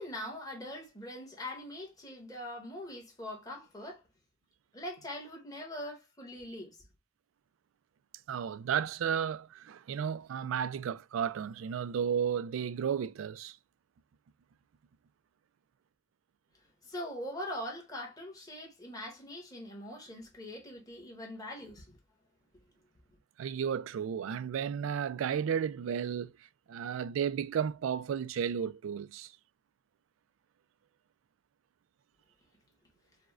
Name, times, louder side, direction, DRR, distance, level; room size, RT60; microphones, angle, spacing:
voice 1, 0.0-4.0 4.7-6.8 16.8-22.0, left 1 dB, 20° left, 1.2 m, -42 dB
voice 2, 8.3-13.6 23.4-29.3, right 8 dB, 75° right, 0.3 m, -33 dB
4.8 x 2.1 x 2.3 m
head